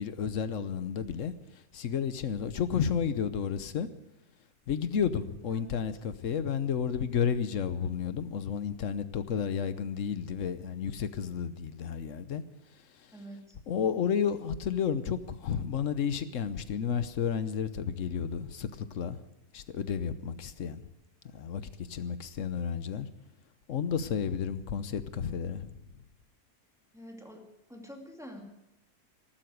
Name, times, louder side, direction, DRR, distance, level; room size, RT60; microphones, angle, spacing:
voice 1, 0.0-3.9 4.7-12.4 12.7-13.2 13.7-19.2 19.5-20.9 21.3-23.1 23.7-25.8, left 7 dB, 55° left, 1.1 m, -32 dB
voice 2, 13.1-13.6 26.9-27.4 27.7-28.4, equal, ahead, 2.5 m, -46 dB
14.5 x 12.0 x 7.9 m
omnidirectional pair, 1.7 m